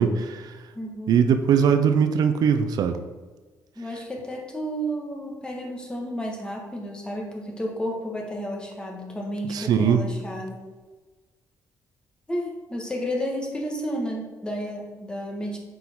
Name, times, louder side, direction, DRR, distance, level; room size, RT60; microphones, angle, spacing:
voice 1, 0.0-0.6 1.1-3.0 9.5-10.1, right 7 dB, 70° right, 9 dB, 0.5 m, -21 dB
voice 2, 0.7-1.1 3.8-10.7 12.3-15.6, equal, 15° left, 0 dB, 1.3 m, -32 dB
7.8 x 4.7 x 3.6 m, 1.3 s
cardioid pair, 130°, 7 cm